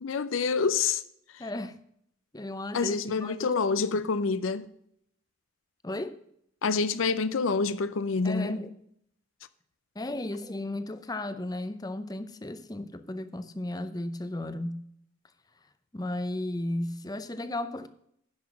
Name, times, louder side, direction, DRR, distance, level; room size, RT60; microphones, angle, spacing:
voice 1, 0.0-1.0 1.3-1.5 2.7-4.7 6.6-8.6, left 4 dB, 80° left, 0.5 m, -27 dB
voice 2, 1.4-1.8 2.3-3.5 3.9-4.0 5.8-6.2 8.2-8.7 9.9-14.8 15.9-17.9, left 1 dB, 20° left, 0.6 m, -34 dB
10.5 x 5.9 x 6.1 m
head